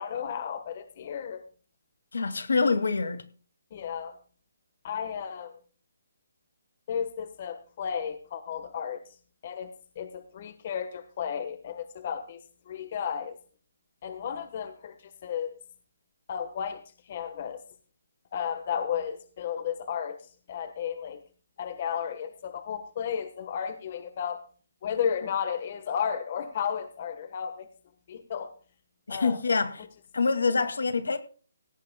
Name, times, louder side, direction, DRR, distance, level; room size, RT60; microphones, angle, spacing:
voice 1, 0.0-1.4 3.7-4.2 4.8-5.6 6.9-9.0 9.4-12.4 12.7-13.4 14.0-15.6 16.3-17.6 18.3-20.2 20.5-21.2 21.6-24.4 24.8-27.7 28.1-28.5 29.1-29.4 29.8-29.9 30.6-30.7, left 8 dB, 30° left, 1.3 m, -33 dB
voice 2, 2.1-3.2 29.1-29.9 30.1-31.2, left 4 dB, 85° left, 2.3 m, -26 dB
17.5 x 15.0 x 2.3 m
hypercardioid pair, 175°, 0 cm